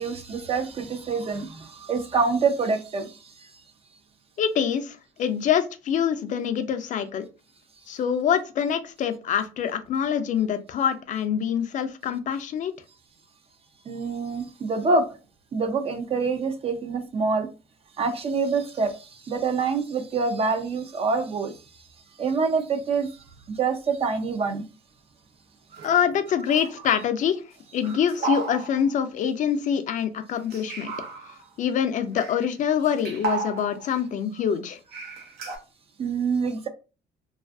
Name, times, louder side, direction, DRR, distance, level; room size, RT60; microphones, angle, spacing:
voice 1, 0.0-3.2 13.9-15.1 15.5-17.5 18.0-21.5 22.2-23.1 23.5-24.7 25.7-25.9 36.0-36.7, right 4 dB, 35° right, 0.4 m, -26 dB
voice 2, 4.4-7.3 7.9-12.7 25.8-27.4 27.7-30.9 31.6-34.8, left 8 dB, 50° left, 0.4 m, -25 dB
sound 1, 25.8-26.2 26.5-26.9 27.8-29.0 30.5-31.4 32.2-32.5 32.8-34.0 34.9-35.6, right 4 dB, 75° right, 0.7 m, -34 dB
2.4 x 2.3 x 2.3 m
cardioid pair, 110°, 17 cm